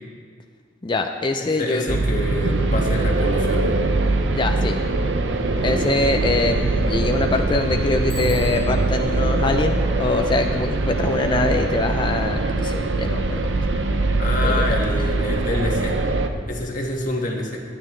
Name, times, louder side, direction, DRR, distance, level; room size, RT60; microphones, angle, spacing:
voice 1, 0.8-2.0 2.7-2.8 4.3-4.8 5.6-13.6 14.4-15.1, left 3 dB, 25° left, 4 dB, 0.5 m, -24 dB
voice 2, 1.6-3.7 14.2-16.0 16.5-17.6, left 1 dB, 45° left, -1 dB, 1.8 m, -27 dB
sound 1, 1.9-16.3, right 2 dB, 80° right, 0.8 m, -22 dB
Bicycle bell, 8.1-9.1, equal, 15° right, 2.5 m, -40 dB
22.5 x 9.1 x 3.2 m, 2.1 s
head